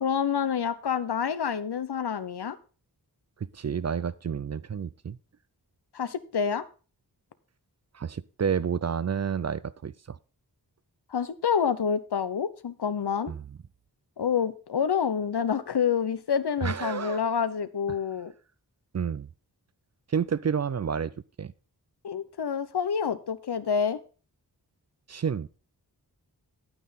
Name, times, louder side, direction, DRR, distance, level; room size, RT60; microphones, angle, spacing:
voice 1, 0.0-2.6 5.9-6.6 11.1-13.3 14.2-18.3 22.0-24.0, left 7 dB, 75° left, 0.8 m, -28 dB
voice 2, 3.4-5.2 7.9-10.2 13.3-13.4 16.6-17.2 18.9-19.3 20.1-21.5 25.1-25.5, right 7 dB, 45° right, 0.4 m, -30 dB
9.6 x 9.1 x 4.1 m
wide cardioid pair, 80°, 40 cm